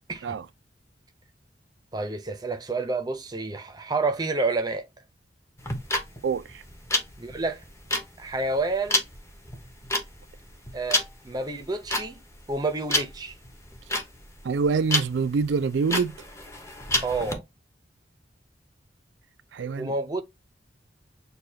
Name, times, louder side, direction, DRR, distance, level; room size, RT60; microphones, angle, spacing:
voice 1, 1.9-4.9 7.2-7.6 8.2-9.0 10.7-12.2 12.5-13.4 17.0-17.4 19.8-20.2, right 3 dB, 20° right, 0.6 m, -29 dB
sound 1, 5.6-17.3, left 1 dB, 15° left, 0.8 m, -29 dB
voice 2, 6.2-6.6 14.4-16.2 19.5-19.9, right 5 dB, 90° right, 0.4 m, -25 dB
6.5 x 2.3 x 2.7 m
head